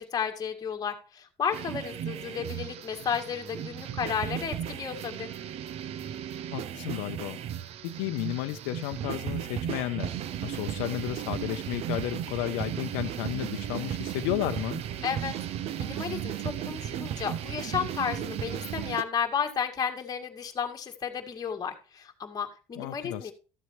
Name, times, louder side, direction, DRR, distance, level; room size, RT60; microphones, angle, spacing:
voice 1, 0.0-5.3 15.0-15.3 15.8-23.3, left 7 dB, 30° left, 4 dB, 1.9 m, -33 dB
sound 1, 1.5-19.0, right 10 dB, 50° right, 0.8 m, -35 dB
voice 2, 6.5-7.4 7.8-10.1 10.4-14.8 22.8-23.3, left 16 dB, 90° left, 7 dB, 0.7 m, -33 dB
13.5 x 7.3 x 3.1 m, 0.34 s
cardioid pair, 125°, 13 cm